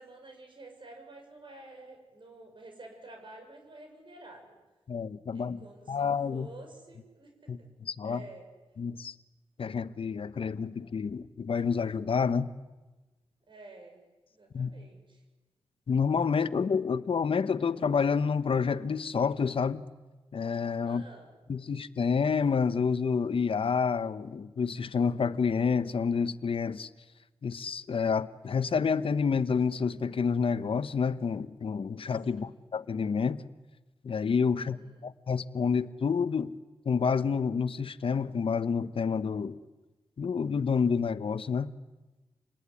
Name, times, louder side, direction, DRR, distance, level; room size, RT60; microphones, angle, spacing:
voice 1, 0.0-4.6 5.3-7.7 8.0-8.5 13.5-14.0 14.3-15.2 20.9-21.3 32.3-32.6 34.6-35.1, right 2 dB, 55° right, 6.8 m, -50 dB
voice 2, 4.9-6.5 7.5-8.2 8.8-9.1 9.6-12.5 14.5-14.7 15.9-19.8 20.3-21.0 21.5-26.9 27.4-33.4 34.0-34.8 35.0-36.5 36.9-39.6 40.2-41.7, left 5 dB, 65° left, 1.0 m, -29 dB
28.0 x 20.5 x 9.9 m
cardioid pair, 65°, 10 cm